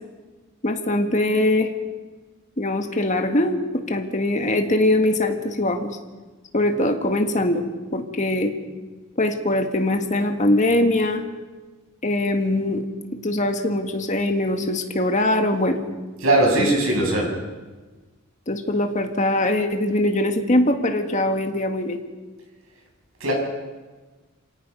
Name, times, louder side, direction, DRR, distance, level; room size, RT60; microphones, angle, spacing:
voice 1, 0.6-1.7 2.6-5.9 6.5-7.7 7.9-8.5 9.2-11.2 12.0-12.9 13.2-15.8 16.6-16.7 18.5-22.0, left 1 dB, 35° left, 5 dB, 1.8 m, -22 dB
voice 2, 16.2-17.3 23.2-23.3, right 1 dB, 80° right, -1 dB, 7.5 m, -19 dB
28.0 x 17.5 x 5.5 m, 1.3 s
head